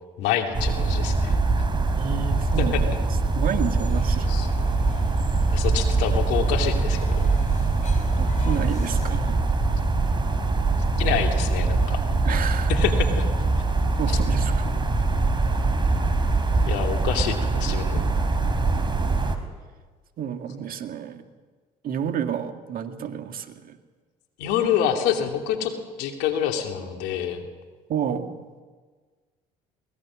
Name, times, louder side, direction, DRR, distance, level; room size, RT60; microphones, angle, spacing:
voice 1, 0.2-1.3 2.6-2.8 4.3-4.5 5.5-7.3 11.0-12.0 12.7-13.3 16.6-18.1 24.4-25.7 26.0-27.4, left 9 dB, 75° left, 4 dB, 2.6 m, -26 dB
sound 1, 0.5-19.4, right 3 dB, 25° right, 3.1 m, -23 dB
voice 2, 2.0-2.7 3.3-4.3 8.2-9.5 12.2-12.7 14.0-14.9 17.7-18.2 20.2-21.2 21.8-23.8 27.9-28.3, right 8 dB, 55° right, 7 dB, 1.9 m, -30 dB
sound 2, 3.7-9.1, left 4 dB, 45° left, 4.6 m, -45 dB
22.5 x 19.0 x 6.3 m, 1.4 s
hypercardioid pair, 65°, 17 cm